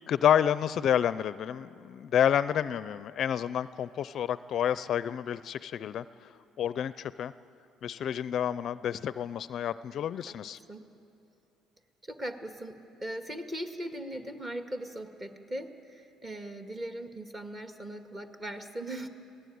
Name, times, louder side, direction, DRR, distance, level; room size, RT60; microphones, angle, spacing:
voice 1, 0.1-6.3 6.6-7.3 7.8-10.6, left 9 dB, 50° left, 15 dB, 0.5 m, -29 dB
voice 2, 12.0-19.1, right 1 dB, 20° right, 6 dB, 1.9 m, -39 dB
26.0 x 17.0 x 9.4 m, 2.8 s
cardioid pair, 115°, 0 cm